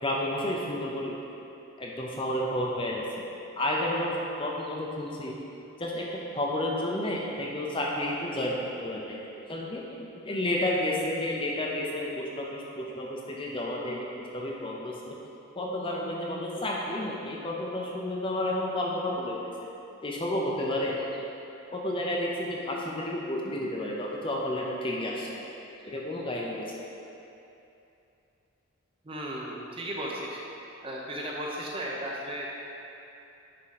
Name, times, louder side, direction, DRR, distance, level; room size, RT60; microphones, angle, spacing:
voice 1, 0.0-1.1 1.8-3.0 3.6-5.4 5.8-6.1 6.3-9.2 9.5-10.0 10.2-14.1 14.3-15.2 15.6-19.4 20.0-21.0 21.7-25.3 25.8-26.7, left 1 dB, 25° left, -3 dB, 0.6 m, -31 dB
voice 2, 29.0-30.4 30.8-32.5, equal, 25° right, -3 dB, 0.7 m, -35 dB
9.7 x 3.7 x 4.2 m, 2.9 s
head